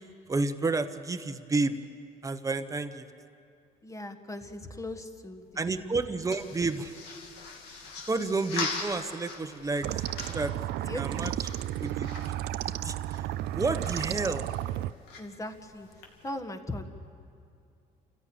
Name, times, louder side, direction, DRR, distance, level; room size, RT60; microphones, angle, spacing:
voice 1, 0.3-1.8 2.2-3.1 5.5-7.0 7.7-7.8 8.1-9.9 10.3-10.5 10.9-11.5 11.8-12.3 12.8-13.2 13.5-14.4, right 3 dB, 20° right, 9 dB, 1.1 m, -30 dB
voice 2, 3.8-5.8 10.8-11.0 15.2-15.9 16.2-16.9, left 1 dB, 20° left, 6 dB, 1.6 m, -39 dB
sound 1, 5.4-16.3, left 4 dB, 90° left, 2.8 m, -42 dB
sound 2, 9.8-14.9, right 14 dB, 75° right, 0.5 m, -33 dB
29.0 x 15.0 x 8.8 m, 2.4 s
cardioid pair, 110°, 17 cm